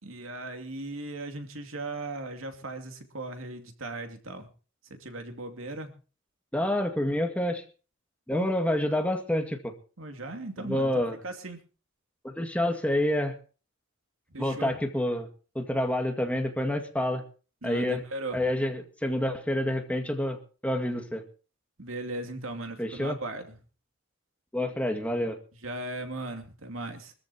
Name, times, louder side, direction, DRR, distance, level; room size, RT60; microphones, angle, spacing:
voice 1, 0.0-4.5 4.9-5.9 8.3-8.5 10.0-10.9 11.2-11.6 14.3-14.7 17.6-18.4 21.8-23.6 25.6-27.1, right 2 dB, 80° right, 5 dB, 2.7 m, -37 dB
voice 2, 6.5-7.6 8.3-9.7 10.6-11.2 12.2-13.4 14.4-15.3 15.6-17.2 17.6-18.0 18.3-21.2 22.8-23.2 24.5-25.4, left 1 dB, 5° left, 5 dB, 2.0 m, -28 dB
24.5 x 14.0 x 2.8 m, 0.36 s
head